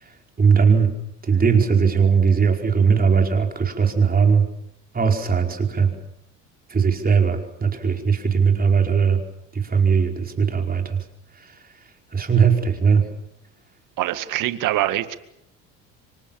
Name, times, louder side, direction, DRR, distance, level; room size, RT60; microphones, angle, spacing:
voice 1, 0.4-0.9 1.2-4.4 4.9-5.9 6.7-9.2 9.5-11.0 12.1-13.1, right 6 dB, 25° right, 3 dB, 4.9 m, -19 dB
voice 2, 14.0-15.2, right 14 dB, 65° right, 11 dB, 2.1 m, -24 dB
28.0 x 24.0 x 7.2 m, 0.78 s
supercardioid pair, 90°, 34 cm